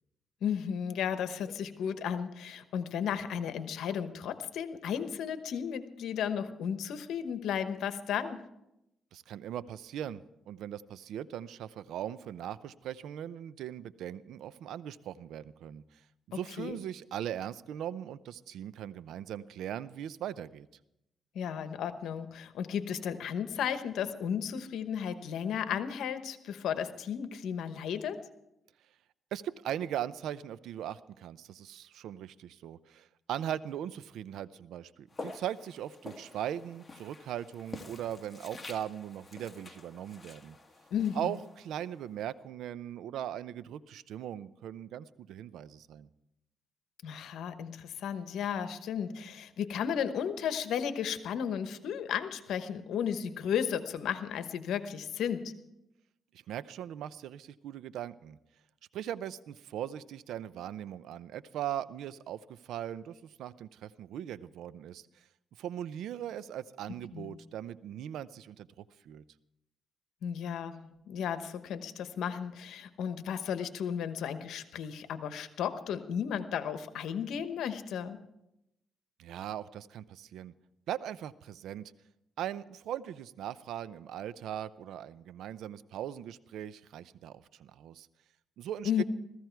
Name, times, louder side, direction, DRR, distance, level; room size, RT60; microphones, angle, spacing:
voice 1, 0.4-8.4 16.6-16.8 21.3-28.2 40.9-41.3 47.0-55.5 67.1-67.3 70.2-78.2 88.8-89.0, left 8 dB, 80° left, 10 dB, 1.0 m, -34 dB
voice 2, 9.1-16.0 16.3-20.7 29.3-40.6 41.1-46.1 56.3-58.4 58.9-65.2 65.6-69.2 79.2-80.5 80.9-81.9 82.4-88.1 88.6-89.0, right 10 dB, 85° right, 17 dB, 0.5 m, -39 dB
Walk footsteps, 35.1-42.2, left 3 dB, 25° left, 1.7 m, -48 dB
15.5 x 14.5 x 4.6 m, 0.86 s
cardioid pair, 80°, 0 cm